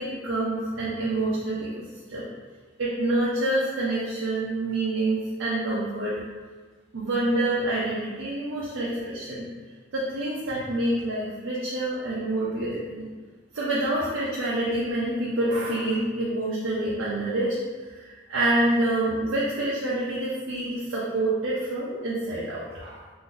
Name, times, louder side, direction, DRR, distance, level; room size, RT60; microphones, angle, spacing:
voice 1, 0.0-1.7 2.1-2.2 2.8-6.1 6.9-9.5 9.9-13.1 13.5-23.0, right 1 dB, 75° right, -7 dB, 0.6 m, -27 dB
2.6 x 2.6 x 3.7 m, 1.4 s
head